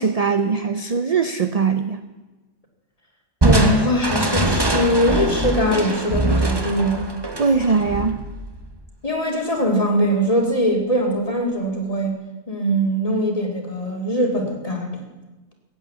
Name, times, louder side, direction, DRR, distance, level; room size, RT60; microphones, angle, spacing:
voice 1, 0.0-2.0 7.4-8.2, right 5 dB, 40° right, 9 dB, 0.6 m, -21 dB
voice 2, 3.4-7.1 9.0-12.1 12.5-15.0, equal, 30° left, 2 dB, 2.4 m, -21 dB
Crushing, 3.4-8.8, right 2 dB, 20° right, 1.1 m, -22 dB
16.5 x 8.6 x 8.3 m, 1.2 s
omnidirectional pair, 1.3 m